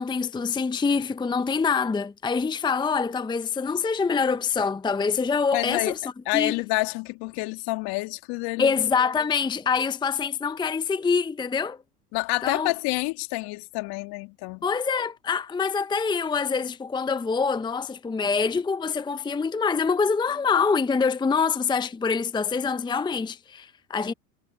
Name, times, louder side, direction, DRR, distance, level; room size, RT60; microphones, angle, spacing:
voice 1, 0.0-6.0 6.3-6.5 8.6-11.8 12.4-12.7 14.6-24.1, left 5 dB, 10° left, 0.8 m, -25 dB
voice 2, 5.5-5.9 6.3-8.7 12.1-14.6, left 24 dB, 55° left, 2.5 m, -28 dB
hypercardioid pair, 90°, 47 cm